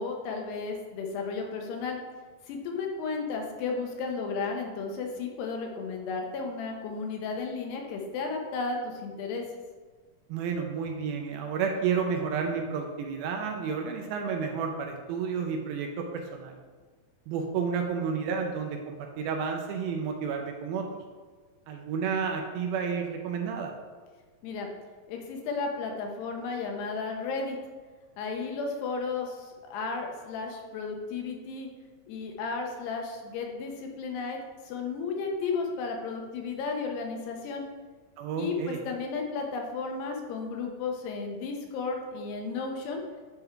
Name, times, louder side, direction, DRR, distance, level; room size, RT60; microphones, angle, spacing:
voice 1, 0.0-2.0 2.5-9.4 24.4-24.7 25.1-27.6 28.2-31.7 32.1-34.4 34.7-37.6 38.4-43.0, left 4 dB, 90° left, 2 dB, 3.1 m, -33 dB
voice 2, 10.3-16.6 17.3-20.9 21.7-23.7 38.2-38.8, right 6 dB, 80° right, 3 dB, 2.3 m, -31 dB
9.2 x 3.7 x 4.5 m, 1.5 s
omnidirectional pair, 4.6 m